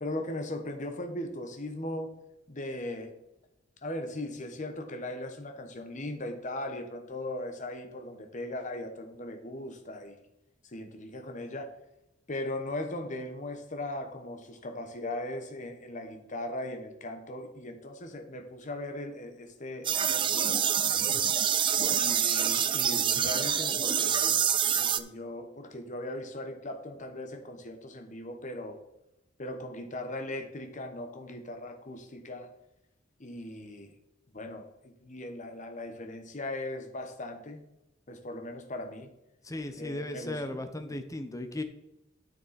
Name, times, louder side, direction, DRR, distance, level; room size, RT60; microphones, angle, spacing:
voice 1, 0.0-2.1 2.5-3.1 3.8-10.2 10.6-11.7 12.3-20.5 21.9-28.8 29.4-32.5 33.2-33.9 34.3-37.6 38.1-39.1 39.8-40.6, left 1 dB, 40° left, 6 dB, 1.1 m, -38 dB
sound 1, 19.8-25.0, right 8 dB, 25° right, 0.4 m, -26 dB
voice 2, 39.4-41.6, left 1 dB, 15° left, 8 dB, 0.8 m, -36 dB
9.6 x 6.7 x 4.2 m, 0.90 s
head